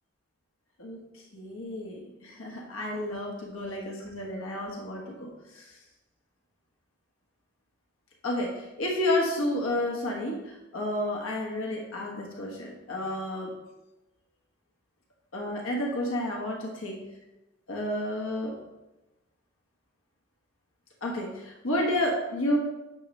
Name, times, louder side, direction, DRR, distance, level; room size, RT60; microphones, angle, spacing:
voice 1, 0.8-5.8 8.2-13.5 15.3-17.0 17.7-18.5 21.0-22.6, left 1 dB, 85° left, -1 dB, 1.3 m, -31 dB
9.0 x 6.5 x 3.3 m, 1.0 s
head